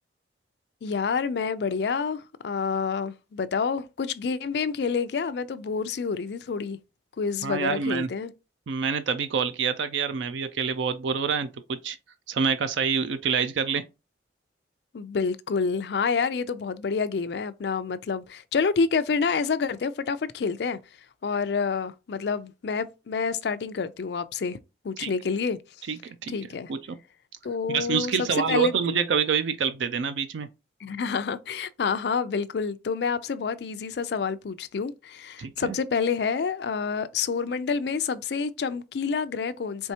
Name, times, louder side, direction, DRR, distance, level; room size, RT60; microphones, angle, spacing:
voice 1, 0.8-6.8 7.2-8.3 14.9-20.8 21.2-24.6 24.8-25.6 26.3-26.7 27.4-28.7 30.8-39.9, left 5 dB, 65° left, 0.4 m, -28 dB
voice 2, 7.4-8.1 8.7-12.0 12.3-13.8 25.0-25.1 25.9-26.3 26.7-27.0 27.7-30.5 35.4-35.8, right 6 dB, 90° right, 0.4 m, -27 dB
4.5 x 3.3 x 2.8 m
head